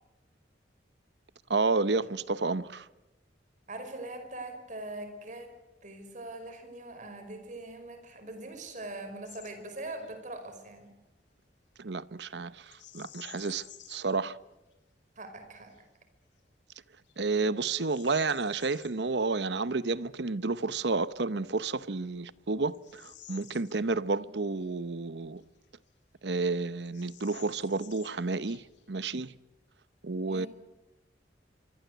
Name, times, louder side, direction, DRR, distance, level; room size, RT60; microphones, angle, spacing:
voice 1, 1.5-2.9 11.8-14.4 17.2-25.4 26.2-29.3 30.0-30.5, right 3 dB, 70° right, 0.9 m, -31 dB
voice 2, 3.7-5.5 5.8-10.9 15.2-15.7 30.3-30.5, right 2 dB, 45° right, 5.2 m, -42 dB
Bird vocalization bird call bird song, 9.3-9.6 9.9-10.1 12.7-14.2 14.7-14.8 15.4-15.8 16.4-16.5 17.1-19.0 21.1-21.2 21.8-24.2 24.6-24.7 25.4-26.2 26.4-26.5 26.8-28.9, left 11 dB, 85° left, 3.5 m, -53 dB
26.5 x 24.0 x 8.1 m
head